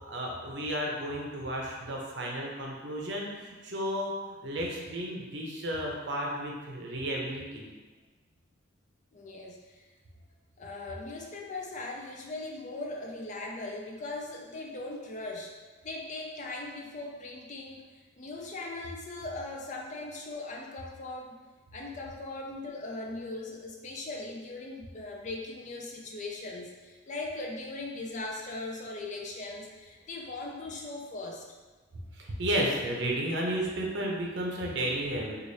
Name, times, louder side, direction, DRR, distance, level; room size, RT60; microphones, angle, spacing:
voice 1, 0.1-4.1 4.4-7.7 32.1-35.3, right 1 dB, 60° right, -1 dB, 0.6 m, -33 dB
voice 2, 9.1-9.9 10.6-15.5 15.8-21.4 21.7-31.5, left 2 dB, 35° left, 0 dB, 0.4 m, -39 dB
4.0 x 2.4 x 3.2 m, 1.3 s
head